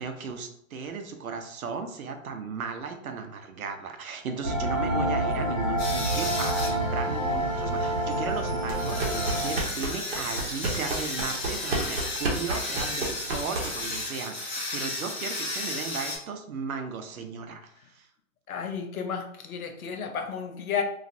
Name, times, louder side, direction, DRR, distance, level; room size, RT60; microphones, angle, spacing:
voice 1, 0.0-18.1, right 5 dB, 80° right, 6 dB, 0.7 m, -36 dB
sound 1, 4.4-9.5, right 1 dB, 25° right, 1.1 m, -28 dB
sound 2, 5.8-16.2, left 2 dB, 45° left, 1.2 m, -34 dB
sound 3, 8.6-14.0, right 2 dB, 45° right, 0.8 m, -32 dB
voice 2, 18.5-20.8, left 6 dB, 85° left, 6 dB, 0.7 m, -32 dB
3.1 x 2.5 x 2.6 m, 0.72 s
hypercardioid pair, 160°, 42 cm